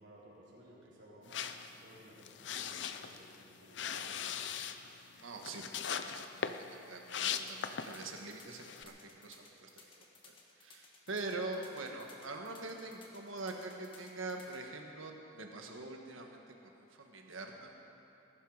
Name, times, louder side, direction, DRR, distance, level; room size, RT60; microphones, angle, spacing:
voice 1, 0.0-1.4 1.8-4.6, equal, 60° right, -7 dB, 4.0 m, -58 dB
sound 1, 1.3-8.2 8.5-8.8, left 7 dB, 60° left, 0.6 m, -40 dB
voice 2, 5.2-6.3 6.6-9.7 10.2-16.4 16.7-17.8, right 2 dB, 90° right, 2 dB, 1.6 m, -44 dB
sound 2, 7.4-14.6, left 4 dB, 25° left, 1.6 m, -59 dB
19.5 x 11.5 x 5.0 m, 2.8 s
head